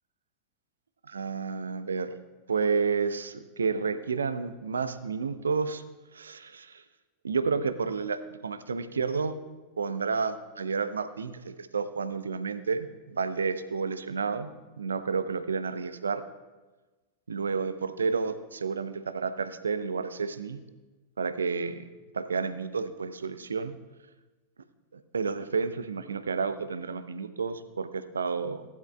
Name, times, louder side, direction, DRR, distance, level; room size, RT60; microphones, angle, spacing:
voice 1, 1.1-2.2 2.5-5.8 6.1-6.8 7.2-9.3 9.8-14.5 14.8-16.2 17.3-20.6 21.2-21.9 22.1-23.7 24.9-28.7, right 5 dB, 70° right, 12 dB, 0.7 m, -30 dB
18.0 x 12.0 x 2.3 m, 1.2 s
figure-of-eight pair, 90°, 0 cm